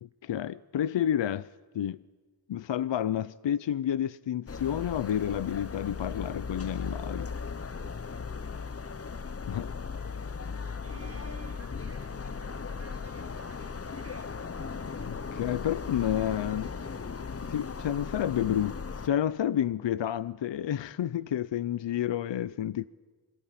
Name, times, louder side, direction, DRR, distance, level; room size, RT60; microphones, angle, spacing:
voice 1, 0.0-1.5 1.7-2.0 2.5-7.3 9.5-9.7 15.1-16.7 17.5-18.8 19.0-22.9, left 10 dB, 70° left, 0.7 m, -30 dB
sound 1, 4.5-19.1, left 5 dB, 30° left, 0.8 m, -37 dB
sound 2, 10.0-10.2 10.6-11.2 11.6-11.7 11.9-18.2, equal, 10° right, 3.4 m, -61 dB
voice 2, 10.8-14.3 16.2-16.3, right 5 dB, 30° right, 1.7 m, -53 dB
28.0 x 26.5 x 5.8 m
cardioid pair, 60°, 46 cm